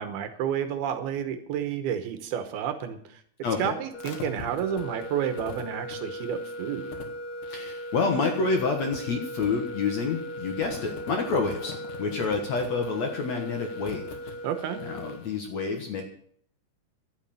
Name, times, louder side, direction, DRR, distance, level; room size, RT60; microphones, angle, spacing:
voice 1, 0.0-3.2 3.6-7.0 14.4-14.8, right 9 dB, 75° right, 9 dB, 2.8 m, -30 dB
voice 2, 3.4-3.7 7.5-14.3 14.8-16.0, left 4 dB, 55° left, 3 dB, 2.1 m, -28 dB
sound 1, 3.9-15.3, left 1 dB, 75° left, 3.8 m, -38 dB
11.5 x 8.3 x 9.0 m, 0.62 s
omnidirectional pair, 4.7 m